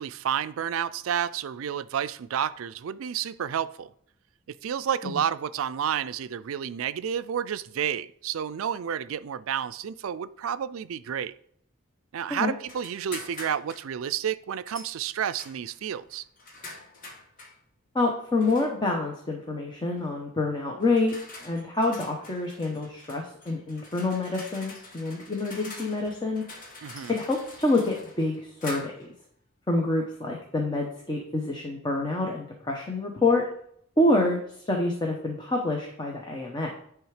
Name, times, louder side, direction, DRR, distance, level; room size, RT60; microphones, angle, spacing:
voice 1, 0.0-3.9 4.5-11.3 12.1-16.2 26.8-27.2, right 8 dB, 80° right, 0.4 m, -30 dB
sound 1, 12.7-13.9 14.7-14.9 15.4-17.6 18.4-18.9 20.0-20.2 20.8-29.1, left 2 dB, 45° left, 1.3 m, -45 dB
voice 2, 17.9-21.2 21.4-26.4 27.1-29.1 29.7-33.4 34.0-36.7, left 2 dB, 20° left, 1.0 m, -27 dB
10.0 x 3.5 x 4.9 m
head